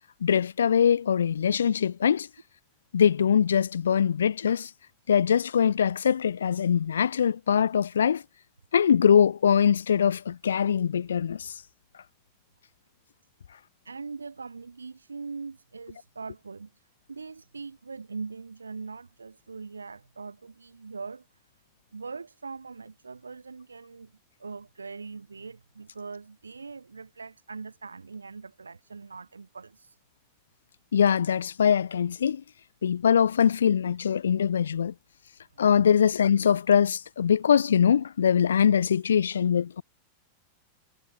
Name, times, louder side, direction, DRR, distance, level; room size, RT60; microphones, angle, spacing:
voice 1, 0.2-2.3 2.9-4.7 5.1-8.2 8.7-11.6 30.9-32.4 32.8-34.9 35.6-39.8, left 8 dB, 70° left, 0.5 m, -22 dB
voice 2, 13.9-16.7 17.1-21.3 21.9-24.1 24.4-29.9 35.9-36.1, right 4 dB, 75° right, 5.7 m, -41 dB
figure-of-eight pair, 90°, 0 cm